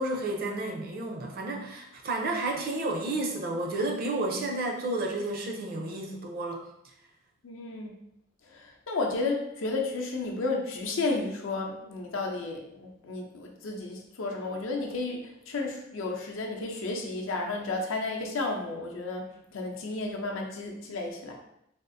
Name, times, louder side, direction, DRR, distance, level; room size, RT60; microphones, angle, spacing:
voice 1, 0.0-6.7, right 2 dB, 50° right, 1 dB, 0.5 m, -31 dB
voice 2, 7.4-8.0 8.5-21.4, left 3 dB, 75° left, 1 dB, 0.6 m, -32 dB
3.5 x 2.4 x 2.6 m, 0.79 s
head